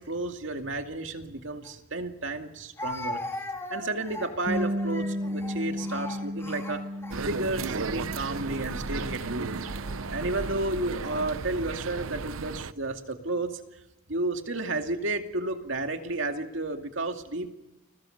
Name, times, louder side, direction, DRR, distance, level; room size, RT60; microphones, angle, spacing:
voice 1, 0.0-3.2 3.7-6.8 7.3-9.6 10.1-13.6 14.1-17.5, right 2 dB, 65° right, 5 dB, 2.4 m, -32 dB
Speech, 1.6-1.7 2.8-7.7 8.4-8.7 9.6-10.2, left 2 dB, 15° left, 3.6 m, -39 dB
Bass guitar, 4.5-10.7, equal, 35° right, 1.6 m, -35 dB
sound 1, 7.1-12.7, right 4 dB, 90° right, 0.8 m, -34 dB
29.5 x 21.0 x 6.7 m, 0.97 s
head